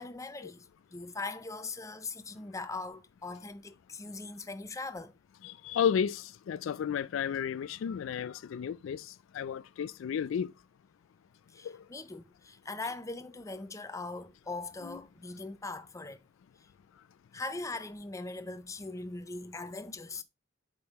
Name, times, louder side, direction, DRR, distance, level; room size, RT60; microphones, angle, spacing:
voice 1, 0.0-5.1 11.5-16.2 17.3-20.2, left 3 dB, 15° left, 0.5 m, -40 dB
voice 2, 5.4-9.1 9.3-10.5 11.6-11.8 14.8-15.0, left 8 dB, 70° left, 0.3 m, -32 dB
7.9 x 5.3 x 3.0 m
head